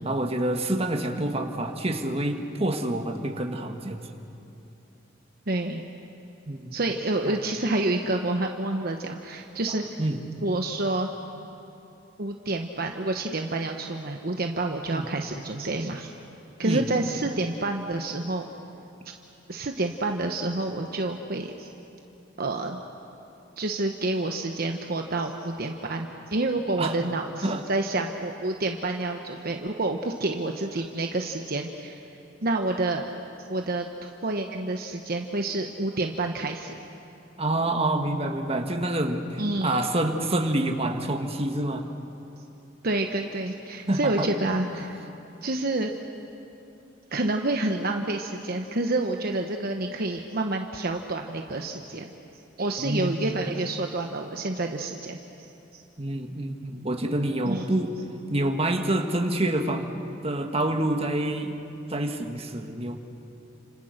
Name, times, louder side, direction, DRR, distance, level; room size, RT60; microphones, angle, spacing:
voice 1, 0.0-4.1 6.5-6.8 7.3-7.4 9.7-10.2 14.9-15.1 16.6-16.9 26.8-26.9 27.4-27.6 37.4-41.9 43.9-44.3 52.8-53.4 56.0-58.0 58.3-59.9 60.2-61.6 61.9-63.0, right 1 dB, 30° right, 4 dB, 1.8 m, -27 dB
voice 2, 5.5-5.8 6.7-10.0 10.4-11.1 12.2-16.1 16.6-18.5 19.5-21.7 22.4-22.8 23.6-32.0 32.4-33.0 33.5-36.8 39.4-39.8 42.8-45.0 45.4-45.9 47.1-52.1 52.6-55.5 55.7-55.8 57.5-57.7, right 2 dB, 55° right, 3 dB, 1.1 m, -28 dB
30.0 x 27.0 x 6.6 m, 2.8 s
head